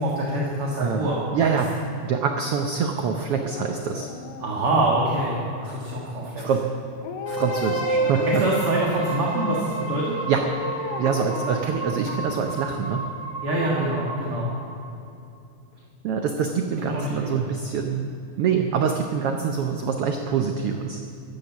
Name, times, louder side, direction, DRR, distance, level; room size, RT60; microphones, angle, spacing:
voice 1, 0.0-1.2 1.5-1.6 4.4-6.4 8.3-10.2 13.4-14.5 16.8-17.4, right 1 dB, 50° right, -4 dB, 2.4 m, -25 dB
voice 2, 0.8-1.7 2.0-4.1 6.2-6.7 7.3-8.4 10.3-10.5 11.0-13.1 16.0-21.0, right 6 dB, 80° right, 4 dB, 1.3 m, -25 dB
Dog, 3.2-5.3 7.0-8.7 10.4-12.5 12.9-13.0, left 6 dB, 90° left, 2.6 m, -36 dB
sound 1, 7.2-15.0, right 3 dB, 5° left, 1.8 m, -30 dB
14.0 x 11.0 x 7.1 m, 2.6 s
omnidirectional pair, 3.7 m